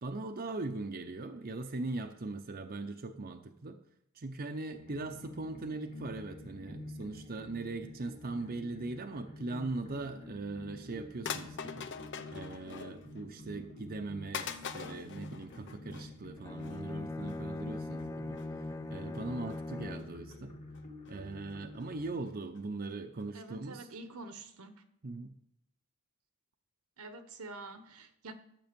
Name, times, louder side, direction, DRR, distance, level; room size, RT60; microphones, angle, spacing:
voice 1, 0.0-3.8 4.1-20.5 21.1-23.9 25.0-25.3, right 3 dB, 45° right, 0.7 m, -40 dB
sound 1, 4.7-22.1, left 1 dB, 40° left, 2.3 m, -49 dB
sound 2, 10.5-10.6 11.3-13.2 13.6-13.7 14.3-16.1 16.6-16.8 17.2-17.4 17.9-18.1 18.3-18.5 19.1-19.6 20.0-20.4 20.7-21.1 21.5-21.6 21.8-21.9 22.3-22.4 22.6-22.7 22.9-23.0 23.2-23.3, left 7 dB, 55° left, 0.8 m, -43 dB
Bowed string instrument, 16.4-20.2, left 2 dB, 15° left, 0.3 m, -40 dB
voice 2, 23.3-24.8 27.0-28.3, right 3 dB, 80° right, 1.2 m, -47 dB
12.0 x 7.7 x 5.2 m
head